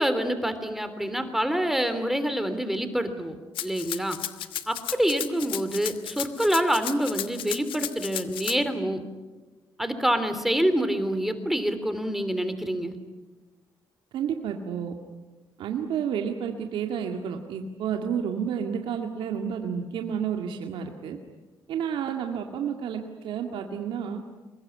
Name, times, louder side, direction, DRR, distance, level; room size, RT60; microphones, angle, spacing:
voice 1, 0.0-3.4 3.6-4.2 4.7-9.0 9.8-12.9, equal, 5° right, 9 dB, 3.2 m, -26 dB
Rattle (instrument), 3.5-8.6, left 12 dB, 80° left, 1.2 m, -34 dB
voice 2, 14.1-14.9 15.6-21.2 21.7-24.2, right 7 dB, 85° right, 3 dB, 2.0 m, -30 dB
25.0 x 21.5 x 9.8 m, 1.2 s
cardioid pair, 80°, 9 cm